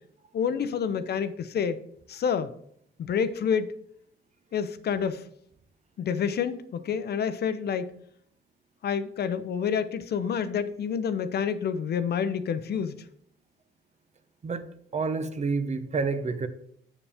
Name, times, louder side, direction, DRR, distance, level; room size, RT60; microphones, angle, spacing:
voice 1, 0.3-1.8 2.1-2.5 3.0-3.8 4.5-5.3 6.0-8.0 8.8-13.0, left 7 dB, 55° left, 13 dB, 0.6 m, -28 dB
voice 2, 14.9-16.5, right 4 dB, 35° right, 11 dB, 0.8 m, -28 dB
7.0 x 7.0 x 3.5 m, 0.68 s
cardioid pair, 90°, 20 cm